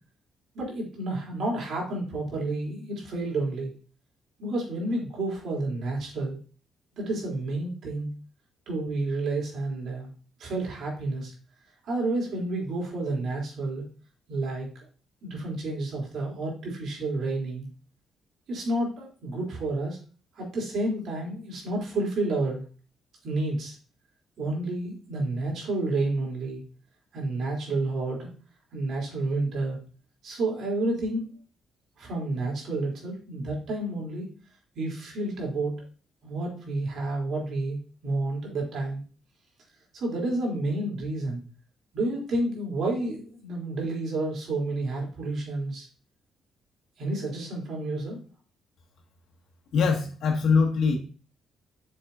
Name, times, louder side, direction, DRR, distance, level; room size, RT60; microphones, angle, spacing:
voice 1, 0.5-3.7 4.4-6.4 6.9-8.1 8.7-10.1 10.4-11.3 11.8-13.8 14.3-14.7 15.2-17.7 18.5-20.0 20.3-22.6 23.2-23.8 24.4-26.6 27.1-28.3 28.7-29.8 30.2-31.3 32.0-34.3 34.8-35.7 36.2-39.0 39.9-41.4 41.9-45.9 47.0-48.2, right 2 dB, 65° right, -1 dB, 3.7 m, -30 dB
voice 2, 49.7-51.0, left 5 dB, 70° left, 1 dB, 2.1 m, -22 dB
7.7 x 6.8 x 2.8 m, 0.37 s
cardioid pair, 90°, 0 cm